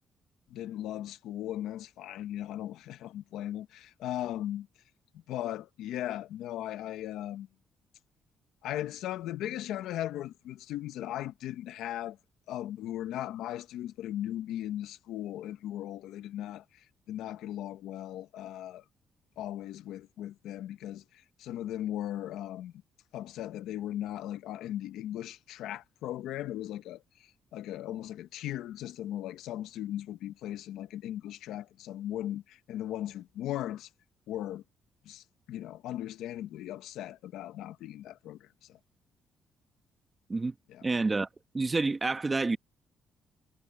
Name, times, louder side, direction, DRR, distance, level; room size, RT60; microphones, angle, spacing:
voice 1, 0.5-4.7 5.1-7.5 8.6-12.2 12.5-18.8 19.4-22.7 23.1-33.9 34.3-34.6 35.0-38.8 40.7-40.8, left 12 dB, 90° left, 1.0 m, -38 dB
voice 2, 40.8-41.3 41.5-42.6, right 3 dB, 25° right, 1.2 m, -28 dB
cardioid pair, 90°, 0 cm